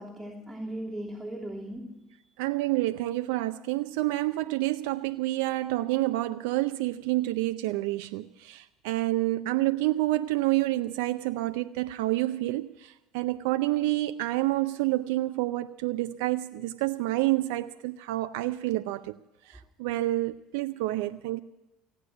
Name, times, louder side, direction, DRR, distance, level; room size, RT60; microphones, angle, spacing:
voice 1, 0.0-2.2, right 1 dB, 5° right, 3.1 m, -38 dB
voice 2, 2.4-19.1 19.5-21.4, right 17 dB, 75° right, 0.5 m, -28 dB
16.5 x 9.4 x 9.4 m
hypercardioid pair, 75°, 0 cm